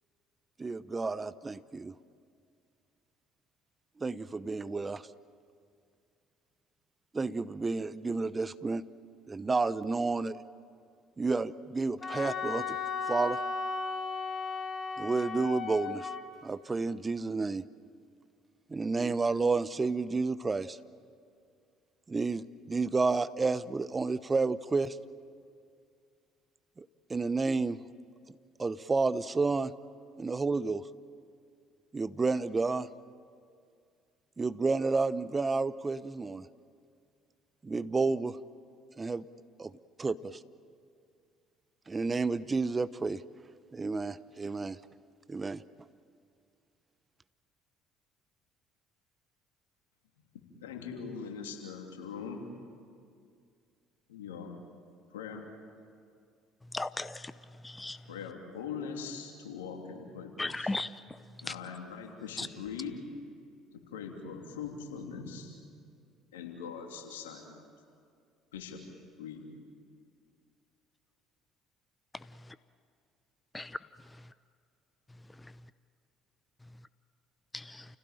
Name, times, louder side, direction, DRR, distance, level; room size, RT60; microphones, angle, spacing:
voice 1, 0.6-1.9 4.0-5.0 7.1-8.8 9.3-10.4 11.2-12.8 13.1-13.4 15.0-16.1 16.4-17.6 18.7-20.8 22.1-25.0 26.8-27.8 28.6-29.7 30.2-30.8 31.9-32.9 34.4-36.5 37.6-38.4 39.0-39.2 39.6-39.7 40.0-40.4 41.9-43.2 43.7-44.8 45.3-45.6, right 3 dB, 25° right, 16 dB, 0.8 m, -30 dB
Wind instrument woodwind instrument, 12.0-16.2, left 4 dB, 40° left, 2.6 m, -35 dB
voice 2, 50.6-52.4 54.1-54.6 55.1-55.6 58.1-60.8 61.4-63.0 63.7-65.6 66.3-67.7 68.5-68.8 69.2-69.5, left 6 dB, 85° left, 2 dB, 3.0 m, -42 dB
voice 3, 56.7-57.3 57.6-58.0 60.4-60.9 62.4-62.5 73.5-73.8 77.5-77.9, left 2 dB, 15° left, 15 dB, 0.7 m, -35 dB
30.0 x 17.0 x 9.0 m, 2.3 s
hypercardioid pair, 65°, 0 cm